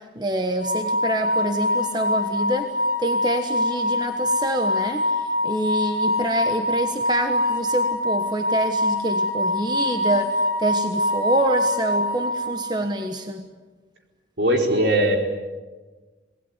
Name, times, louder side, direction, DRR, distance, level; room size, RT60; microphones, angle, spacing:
voice 1, 0.1-2.7 3.0-5.0 5.4-10.3 10.6-13.4, right 1 dB, 25° right, 5 dB, 1.4 m, -26 dB
sound 1, 0.6-12.8, left 1 dB, 50° right, 4.5 m, -24 dB
voice 2, 14.4-15.2, right 1 dB, 70° right, 2 dB, 4.7 m, -19 dB
26.5 x 19.5 x 9.8 m, 1.3 s
head